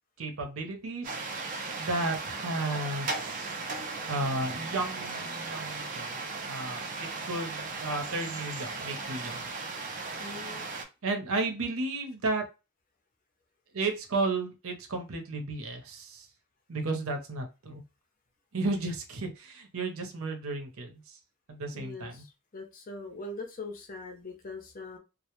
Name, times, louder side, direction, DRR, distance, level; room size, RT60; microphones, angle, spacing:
voice 1, 0.2-3.5 4.1-6.2 6.4-9.4 11.0-12.4 13.7-16.3 16.7-17.8 18.5-21.2 21.5-22.2, right 2 dB, 80° right, 0.7 m, -33 dB
sound 1, 1.0-10.8, right 3 dB, 40° right, 0.4 m, -37 dB
voice 2, 10.2-10.7 21.7-22.3 22.5-25.0, left 2 dB, 40° left, 0.6 m, -41 dB
2.1 x 2.0 x 2.9 m
head